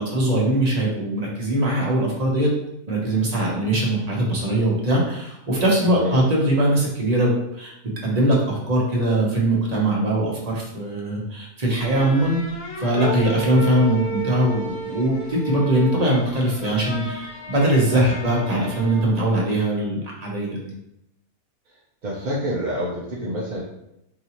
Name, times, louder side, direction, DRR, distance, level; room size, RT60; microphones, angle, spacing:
voice 1, 0.0-2.5 2.9-7.3 7.5-7.7 8.0-12.4 12.8-20.7, right 1 dB, 30° right, -4 dB, 0.9 m, -21 dB
sound 1, 11.8-19.3, right 2 dB, 80° left, 1.2 m, -33 dB
voice 2, 22.0-23.6, equal, 50° right, -6 dB, 0.6 m, -27 dB
4.7 x 2.7 x 3.0 m, 0.82 s
omnidirectional pair, 1.6 m